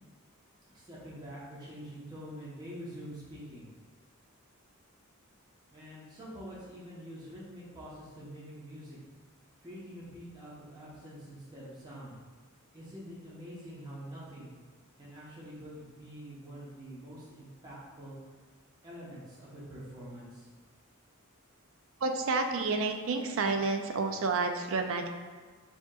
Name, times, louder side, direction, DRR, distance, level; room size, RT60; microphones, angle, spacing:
voice 1, 0.7-3.7 5.7-9.0 9.6-12.2 12.7-14.5 15.0-18.2 18.8-20.5, equal, 20° right, -8 dB, 0.9 m, -46 dB
voice 2, 22.0-25.1, right 3 dB, 65° right, 5 dB, 0.4 m, -30 dB
6.9 x 2.9 x 2.3 m, 1.4 s
head